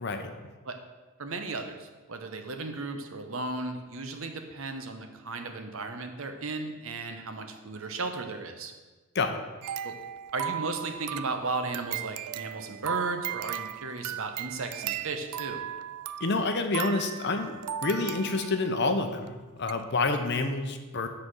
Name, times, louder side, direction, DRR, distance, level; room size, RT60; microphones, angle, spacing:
voice 1, 0.0-0.3 9.1-9.4 16.2-21.1, left 3 dB, 50° left, 6 dB, 0.7 m, -28 dB
voice 2, 1.2-8.7 9.8-9.9 10.3-15.6, right 3 dB, 65° right, 6 dB, 0.8 m, -35 dB
sound 1, 9.6-18.8 19.3-19.4 19.7-19.8, right 11 dB, 85° right, 0.3 m, -37 dB
7.7 x 4.3 x 6.2 m, 1.2 s
head